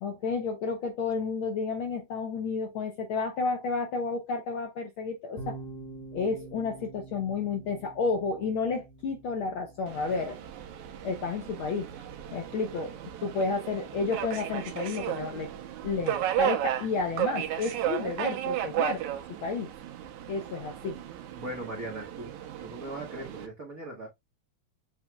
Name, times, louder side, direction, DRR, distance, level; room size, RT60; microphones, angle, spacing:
voice 1, 0.0-5.6 6.1-10.4 11.0-11.9 12.3-13.0 13.2-15.5 15.8-19.1 19.4-19.7 20.3-21.0, left 4 dB, 80° left, 1.1 m, -31 dB
sound 1, 5.4-14.8, right 3 dB, 65° left, 1.8 m, -48 dB
Subway metro underground, 9.9-23.5, right 12 dB, 85° right, 2.2 m, -34 dB
voice 2, 21.4-24.1, right 1 dB, 70° right, 0.8 m, -39 dB
7.8 x 3.0 x 2.2 m
omnidirectional pair, 3.3 m